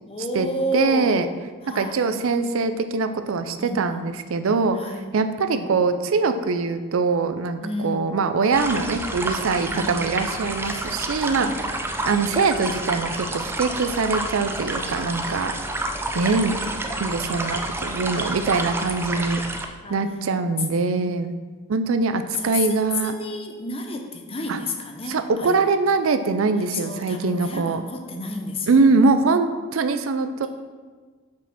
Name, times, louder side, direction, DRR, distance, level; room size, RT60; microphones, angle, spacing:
voice 1, 0.1-1.3 1.6-2.0 3.6-4.1 4.7-5.1 5.5-5.7 7.6-8.2 9.7-9.9 10.7-11.8 14.7-15.6 16.9-17.0 19.8-20.0 20.9-21.3 22.3-25.6 26.7-28.7, left 1 dB, 25° left, 4 dB, 0.7 m, -31 dB
voice 2, 0.7-1.3 1.7-15.5 16.1-19.4 19.9-21.3 21.7-23.2 24.5-24.6 25.1-27.8 28.7-30.5, right 4 dB, 70° right, 9 dB, 0.5 m, -23 dB
sound 1, 8.5-19.7, right 1 dB, 10° right, 0.4 m, -29 dB
5.6 x 4.9 x 6.0 m, 1.5 s
head